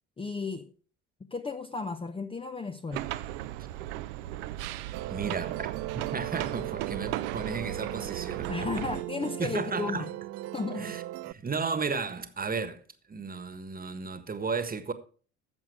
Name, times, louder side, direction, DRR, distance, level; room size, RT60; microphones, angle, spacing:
voice 1, 0.2-0.7 1.3-3.1 8.5-10.1 10.5-10.9, left 4 dB, 15° left, 0.7 m, -34 dB
sound 1, 2.9-9.0, right 14 dB, 60° right, 0.7 m, -37 dB
Musical instrument, 4.9-11.3, right 17 dB, 40° right, 0.4 m, -38 dB
voice 2, 5.1-8.8 9.4-10.1 10.8-12.8 13.1-14.9, right 5 dB, 20° right, 1.5 m, -34 dB
14.5 x 7.2 x 4.8 m
figure-of-eight pair, 55°, 39 cm